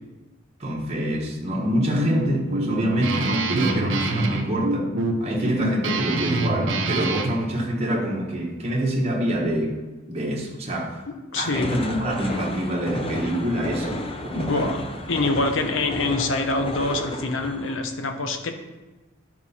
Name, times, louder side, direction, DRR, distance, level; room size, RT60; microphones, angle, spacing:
voice 1, 0.6-4.9 5.2-9.7 10.1-11.0 11.4-14.7, right 1 dB, 30° right, -3 dB, 1.1 m, -26 dB
Guitar, 1.6-7.4, right 2 dB, 65° right, 0.8 m, -26 dB
voice 2, 11.3-11.8 14.3-14.8 15.1-18.5, left 2 dB, 65° left, 6 dB, 0.8 m, -25 dB
sound 1, 11.5-17.8, left 1 dB, 30° left, 0.6 m, -32 dB
10.5 x 4.6 x 4.2 m, 1.2 s
head